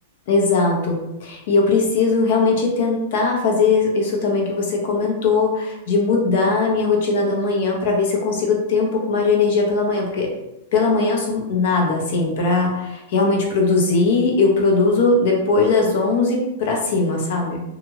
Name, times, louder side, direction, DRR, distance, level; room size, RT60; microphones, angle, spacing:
voice 1, 0.3-10.3 10.7-17.6, left 3 dB, 60° left, 0 dB, 0.8 m, -19 dB
2.6 x 2.4 x 3.1 m, 0.94 s
hypercardioid pair, 105°, 0 cm